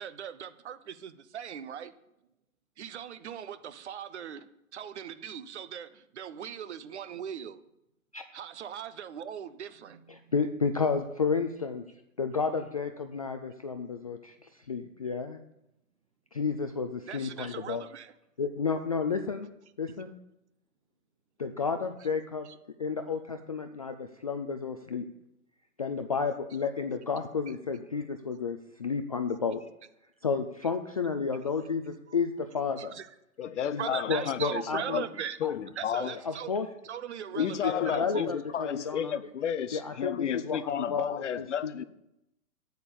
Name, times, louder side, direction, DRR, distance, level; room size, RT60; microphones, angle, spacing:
voice 1, 0.0-1.9 2.8-7.6 8.3-10.2 17.1-18.1 22.4-22.5 29.3-29.4 32.1-32.2 32.8-33.1 33.8-35.4 35.8-36.5 36.8-38.3, right 8 dB, 50° right, 13 dB, 0.8 m, -39 dB
voice 2, 10.1-11.8 12.2-15.4 16.3-17.8 18.4-19.5 19.8-20.1 21.4-22.5 22.8-25.0 25.8-29.7 30.2-32.9 33.7-35.0 35.4-35.5 36.2-36.7 37.3-39.2 39.7-41.8, left 5 dB, 30° left, 7 dB, 0.3 m, -31 dB
voice 3, 33.4-35.1 35.4-36.2 37.4-41.8, left 9 dB, 55° left, 15 dB, 0.8 m, -32 dB
8.2 x 8.2 x 6.9 m, 0.85 s
figure-of-eight pair, 115°, 43 cm